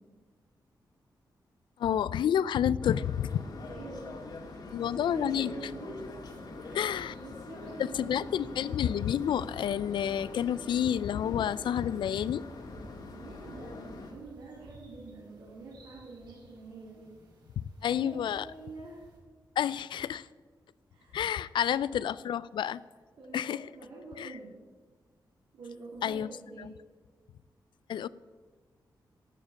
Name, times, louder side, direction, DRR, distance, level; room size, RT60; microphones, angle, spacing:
voice 1, 1.8-3.5 4.7-5.5 6.7-7.2 7.9-12.4 17.6-18.5 19.6-20.3 21.1-22.8 23.3-23.6 24.2-24.3 26.0-26.3 26.6-26.7 27.9-28.1, left 9 dB, 90° left, 18 dB, 0.3 m, -29 dB
sound 1, 2.8-14.1, left 3 dB, 60° left, 2.0 m, -44 dB
voice 2, 3.7-6.0 6.6-6.8 7.2-8.6 13.1-17.2 17.9-19.0 20.9-21.2 23.2-24.5 25.5-26.8, right 3 dB, 85° right, -6 dB, 2.7 m, -46 dB
sound 2, 6.2-19.2, right 2 dB, 65° right, 3.2 m, -58 dB
11.5 x 7.3 x 8.4 m, 1.5 s
wide cardioid pair, 150°, 8 cm